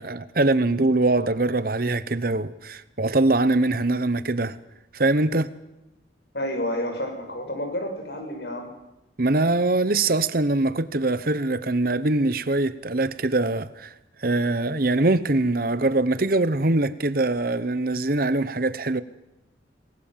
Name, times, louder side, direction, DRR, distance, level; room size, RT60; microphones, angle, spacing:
voice 1, 0.0-4.6 4.9-5.5 9.2-13.9 14.2-19.0, right 2 dB, 50° right, 1.0 m, -23 dB
voice 2, 6.3-8.7, left 1 dB, 55° left, 6.4 m, -30 dB
28.0 x 20.5 x 7.5 m
head